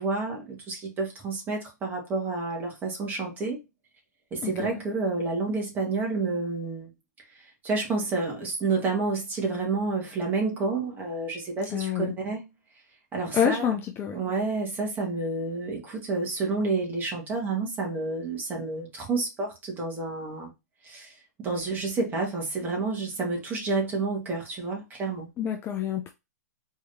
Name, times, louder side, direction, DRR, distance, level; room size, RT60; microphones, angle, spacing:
voice 1, 0.0-3.6 4.3-6.9 7.6-12.4 13.1-13.7 14.1-20.5 20.8-25.3, right 3 dB, 20° right, 2.1 m, -29 dB
voice 2, 4.4-4.8 11.7-12.1 13.3-14.2 25.4-26.1, left 9 dB, 25° left, 0.6 m, -27 dB
4.6 x 3.6 x 2.8 m
hypercardioid pair, 125°, 9 cm